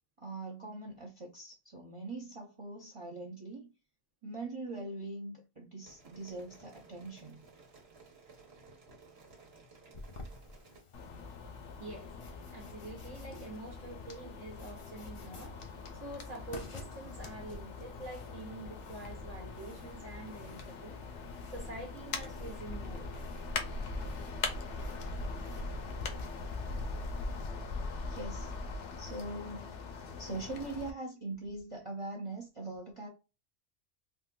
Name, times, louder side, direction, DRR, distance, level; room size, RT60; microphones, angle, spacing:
voice 1, 0.2-3.7 4.2-7.4 28.0-28.5 29.0-29.7 30.2-33.1, right 2 dB, 35° right, 0.6 m, -42 dB
sound 1, 5.8-10.8, right 3 dB, 55° right, 1.2 m, -57 dB
sound 2, 9.9-27.5, left 2 dB, 40° left, 0.4 m, -52 dB
sound 3, 10.9-30.9, left 3 dB, 70° left, 0.9 m, -41 dB
voice 2, 11.8-21.0 21.5-23.1, right 2 dB, 80° right, 1.1 m, -46 dB
3.7 x 2.4 x 2.3 m
omnidirectional pair, 1.3 m